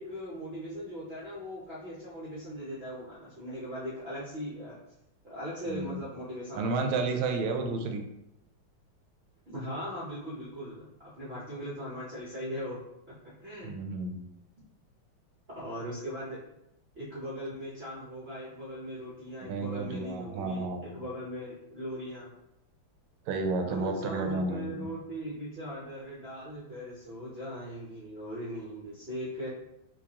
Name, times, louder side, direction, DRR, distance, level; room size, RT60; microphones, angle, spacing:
voice 1, 0.0-4.8 5.2-7.2 9.5-12.8 13.1-13.8 15.5-16.4 16.9-22.3 23.6-29.5, equal, 65° right, -8 dB, 0.6 m, -39 dB
voice 2, 5.7-6.0 6.5-8.0 13.6-14.2 19.4-21.0 23.3-24.9, right 3 dB, 85° right, 4 dB, 1.4 m, -31 dB
4.5 x 2.4 x 2.8 m, 0.84 s
omnidirectional pair, 2.3 m